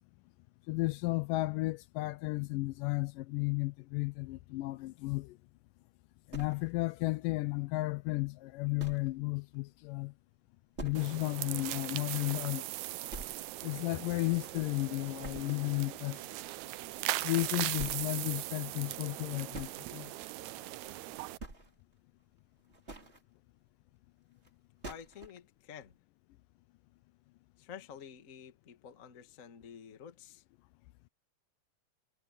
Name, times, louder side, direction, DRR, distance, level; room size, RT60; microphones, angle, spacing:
voice 1, 0.7-5.4 6.3-10.1 10.8-12.7 13.6-16.2 17.2-20.1, left 22 dB, 80° left, 2.1 m, -33 dB
sound 1, 6.3-7.1 7.5-7.6 8.1-8.2 8.8-9.2 9.5-9.6 10.0-10.1 10.8-11.3 11.7-11.8 12.3-12.4 13.1-13.7 14.0-14.8 15.2-15.7 17.1-17.2 17.7-18.2 19.1-19.8 20.8-21.0 21.3-21.9 22.6-23.2 24.4-24.5 24.8-25.4, right 2 dB, 20° right, 3.0 m, -46 dB
sound 2, 10.9-21.4, right 16 dB, 80° right, 1.7 m, -39 dB
voice 2, 24.8-25.9 27.6-30.4, left 8 dB, 40° left, 1.1 m, -50 dB
omnidirectional pair, 4.0 m